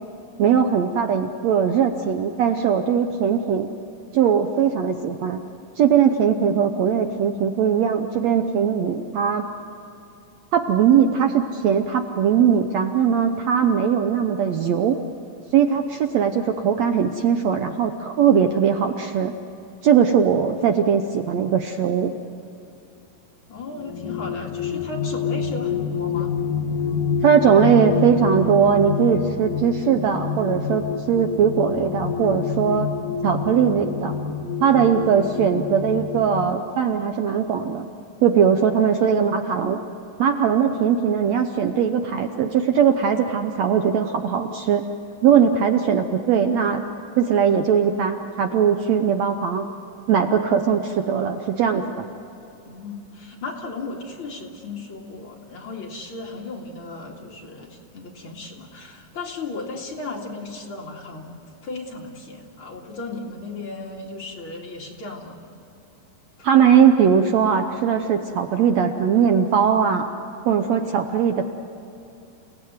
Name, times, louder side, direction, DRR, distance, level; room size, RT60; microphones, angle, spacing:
voice 1, 0.4-3.7 4.1-5.4 5.8-9.5 10.5-15.0 15.5-19.3 19.8-22.1 27.2-32.9 33.2-34.2 34.6-37.9 38.2-39.8 40.2-44.8 45.2-46.8 47.2-49.7 50.1-52.1 66.4-70.1 70.4-71.5, right 7 dB, 70° right, 6 dB, 1.8 m, -20 dB
voice 2, 6.3-6.8 23.5-26.3 52.6-65.4 66.4-66.5, left 3 dB, 40° left, -1 dB, 2.9 m, -35 dB
sound 1, 23.7-36.5, left 6 dB, 80° left, 2.8 m, -27 dB
29.0 x 18.0 x 9.5 m, 2.9 s
omnidirectional pair, 3.8 m